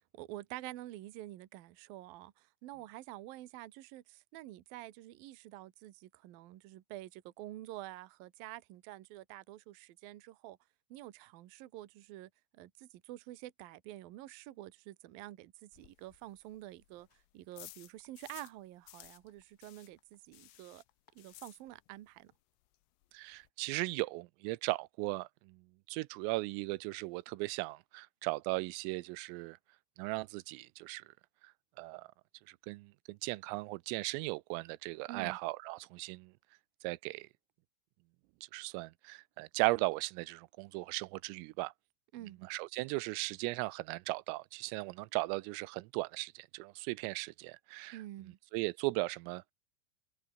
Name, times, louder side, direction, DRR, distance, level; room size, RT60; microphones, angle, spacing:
voice 1, 0.1-10.6 10.9-20.8 21.2-22.3 35.1-35.4 42.1-42.4 47.9-48.4, right 15 dB, 70° right, 2.3 m, -48 dB
sound 1, 15.7-18.6 18.9-22.1 22.3-22.4 22.8-22.9 23.0-23.5, left 17 dB, 85° left, 4.0 m, -56 dB
voice 2, 23.1-25.6 25.9-29.6 30.0-31.0 31.8-32.1 32.5-36.3 36.8-37.3 38.5-41.7 42.4-48.0 48.5-49.4, right 23 dB, 90° right, 3.3 m, -37 dB
omnidirectional pair, 5.9 m